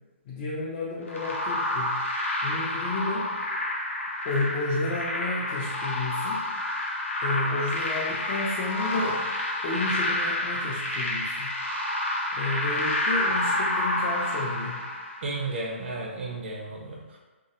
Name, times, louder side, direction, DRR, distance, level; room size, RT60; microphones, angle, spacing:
voice 1, 0.3-2.0 2.4-3.3 4.2-6.4 7.2-9.2 9.6-11.5 12.3-14.8, left 2 dB, 30° left, -5 dB, 0.4 m, -31 dB
sound 1, 1.1-15.4, left 1 dB, 80° left, 0.6 m, -29 dB
voice 2, 15.2-17.2, right 2 dB, 55° right, -2 dB, 0.5 m, -33 dB
2.3 x 2.1 x 2.8 m, 1.2 s
hypercardioid pair, 140°, 7 cm